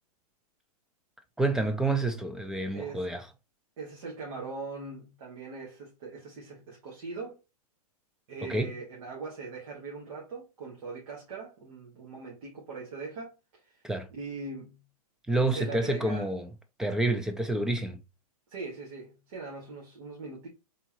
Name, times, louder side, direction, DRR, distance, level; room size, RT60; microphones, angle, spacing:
voice 1, 1.4-3.2 8.5-8.7 13.8-14.1 15.3-16.5 16.8-18.0, right 2 dB, 5° right, 0.3 m, -28 dB
voice 2, 2.7-3.2 3.8-7.4 8.3-13.8 14.1-14.8 15.5-16.3 18.5-20.5, right 4 dB, 60° right, 1.8 m, -41 dB
3.8 x 3.6 x 2.9 m
hypercardioid pair, 145°, 19 cm